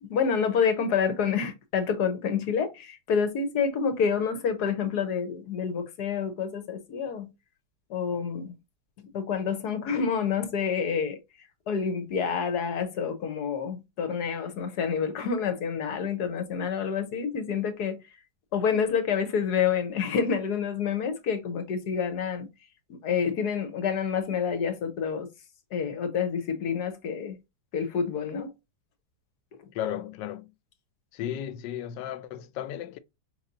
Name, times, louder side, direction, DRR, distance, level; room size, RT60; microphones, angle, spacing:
voice 1, 0.0-7.3 7.9-8.6 9.1-11.2 11.7-18.0 18.5-22.5 22.9-25.3 25.7-27.4 27.7-28.5, left 6 dB, 70° left, 1.4 m, -28 dB
voice 2, 29.7-30.5 31.1-33.0, left 10 dB, 90° left, 1.3 m, -34 dB
5.3 x 3.2 x 2.6 m
omnidirectional pair, 1.9 m